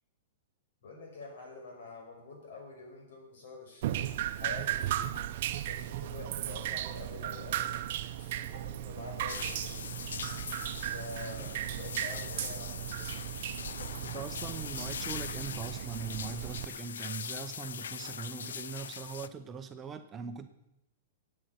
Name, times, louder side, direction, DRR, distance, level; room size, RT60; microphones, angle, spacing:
voice 1, 0.8-9.8 10.9-13.0, left 3 dB, 70° left, 1 dB, 5.8 m, -47 dB
Drip, 3.8-16.7, right 12 dB, 55° right, 0.7 m, -36 dB
sound 1, 9.3-19.3, left 7 dB, 90° left, 0.5 m, -41 dB
voice 2, 14.0-20.5, right 6 dB, 20° right, 7 dB, 0.8 m, -41 dB
17.0 x 8.8 x 5.9 m, 0.90 s
hypercardioid pair, 150°, 0 cm